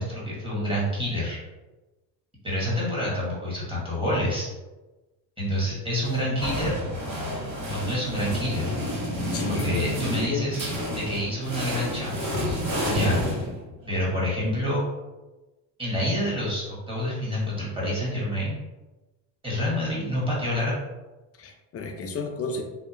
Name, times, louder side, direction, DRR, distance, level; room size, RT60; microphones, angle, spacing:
voice 1, 0.0-1.4 2.4-4.5 5.4-6.7 7.7-8.7 9.5-12.6 12.9-13.2 13.9-14.8 15.8-18.6 19.4-20.7, equal, 10° right, -6 dB, 1.3 m, -28 dB
sound 1, 6.0-14.0, equal, 75° right, 1.3 m, -30 dB
voice 2, 9.3-9.8 10.1-10.6 21.4-22.6, left 4 dB, 30° left, 3 dB, 0.4 m, -32 dB
2.7 x 2.1 x 2.5 m, 1.1 s
supercardioid pair, 80°, 49 cm